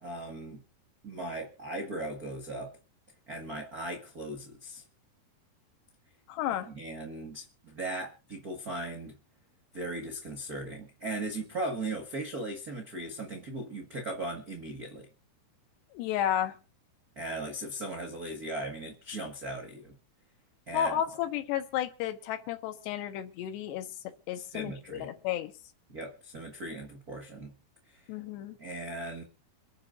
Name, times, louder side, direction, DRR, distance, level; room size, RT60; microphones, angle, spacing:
voice 1, 0.0-0.6 1.0-2.7 3.3-4.8 6.7-9.1 9.7-15.1 17.1-19.9 20.7-21.0 24.3-25.1 25.9-27.5 27.9-28.0 28.6-29.2, right 2 dB, 60° right, 1 dB, 0.9 m, -38 dB
voice 2, 6.3-6.7 15.9-16.6 20.7-23.9 24.3-25.5 28.1-28.6, left 10 dB, 90° left, 8 dB, 3.4 m, -32 dB
28.0 x 9.6 x 2.6 m, 0.32 s
omnidirectional pair, 4.8 m